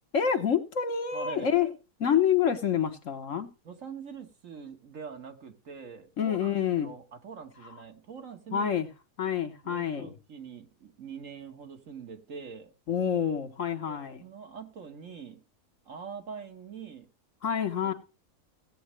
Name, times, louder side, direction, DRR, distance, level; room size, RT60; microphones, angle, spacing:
voice 1, 0.1-1.7 2.0-3.5 6.2-6.9 7.6-7.7 8.5-8.9 9.2-10.1 12.9-14.2 17.4-17.9, left 8 dB, 60° left, 1.6 m, -27 dB
voice 2, 1.1-1.5 3.7-8.7 9.6-12.7 13.9-15.4 15.9-17.1, right 6 dB, 60° right, 1.9 m, -44 dB
16.5 x 8.6 x 3.2 m
omnidirectional pair, 1.5 m